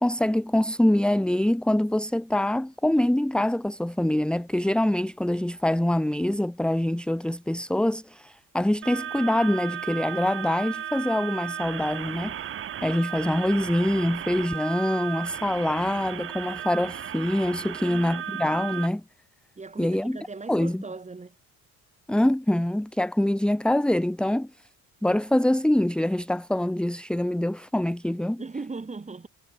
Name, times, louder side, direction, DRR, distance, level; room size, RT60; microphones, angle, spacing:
voice 1, 0.0-12.3 12.8-19.0 19.8-20.2 20.5-20.8 22.1-24.5 25.0-28.4, left 1 dB, 5° left, 1.3 m, -24 dB
sound 1, 8.8-18.9, right 10 dB, 35° right, 0.7 m, -35 dB
voice 2, 17.8-18.5 19.6-21.3 28.4-29.3, right 4 dB, 20° right, 4.0 m, -38 dB
cardioid pair, 135°, 36 cm